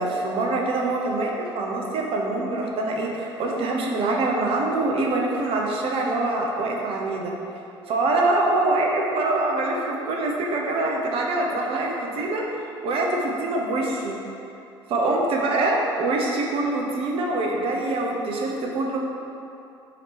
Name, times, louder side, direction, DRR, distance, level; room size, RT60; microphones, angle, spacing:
voice 1, 0.0-7.3 7.9-14.2 14.9-19.0, right 2 dB, 45° right, -1 dB, 0.6 m, -24 dB
5.0 x 2.8 x 2.9 m, 2.7 s
figure-of-eight pair, 60°, 13 cm